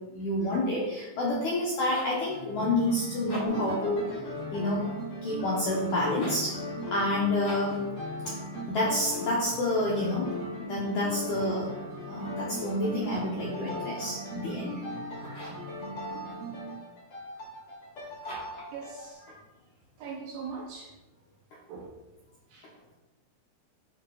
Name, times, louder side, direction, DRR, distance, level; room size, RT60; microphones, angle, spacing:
voice 1, 0.1-4.0 4.5-4.9 5.2-6.6 6.9-7.8 8.7-10.3 10.6-11.7 12.1-14.9 15.2-15.7 19.3-19.4, left 1 dB, 75° left, -5 dB, 1.7 m, -29 dB
sound 1, 1.9-2.2 3.1-3.7 6.1-6.5 7.4-7.8 12.9-13.4 15.3-15.7 18.2-18.7, equal, 20° left, 1.8 m, -43 dB
sound 2, 2.3-16.7, right 1 dB, 65° right, 3.5 m, -41 dB
sound 3, 3.4-19.1, left 2 dB, 60° left, 1.2 m, -41 dB
voice 2, 18.7-19.2 20.0-20.9 21.7-22.1 22.5-22.9, right 5 dB, 80° right, 0 dB, 2.2 m, -41 dB
10.5 x 5.2 x 2.3 m, 1.0 s
omnidirectional pair, 4.8 m